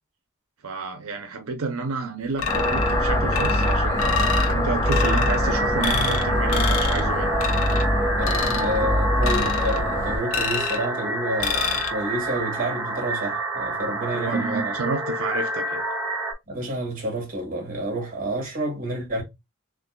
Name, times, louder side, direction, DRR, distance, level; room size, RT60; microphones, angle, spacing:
voice 1, 0.6-7.3 7.6-7.7 14.1-15.8, right 4 dB, 80° right, 0.7 m, -30 dB
sound 1, 2.4-3.0 3.3-4.5 4.9-5.4 5.8-6.2 6.5-7.0 7.4-7.8 8.2-8.7 9.2-9.8 10.3-10.8 11.4-11.9, left 6 dB, 75° left, 0.8 m, -27 dB
sound 2, 2.5-10.2, left 1 dB, 15° left, 0.9 m, -23 dB
sound 3, 5.0-16.3, right 2 dB, 10° right, 2.3 m, -29 dB
voice 2, 8.2-14.8 16.5-19.2, right 1 dB, 40° right, 2.2 m, -29 dB
6.4 x 2.5 x 2.3 m
head